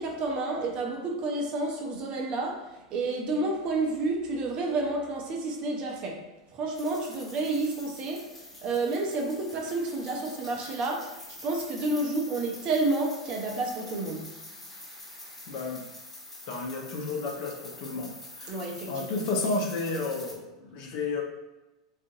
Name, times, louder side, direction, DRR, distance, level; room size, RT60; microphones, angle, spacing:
voice 1, 0.0-14.3 18.5-19.1, right 2 dB, 40° right, 0.6 m, -30 dB
sound 1, 6.7-20.3, left 2 dB, 10° left, 1.0 m, -46 dB
voice 2, 15.5-15.8 16.5-18.6 18.9-21.2, left 3 dB, 50° left, 0.7 m, -32 dB
3.6 x 2.5 x 2.6 m
figure-of-eight pair, 90°, 3 cm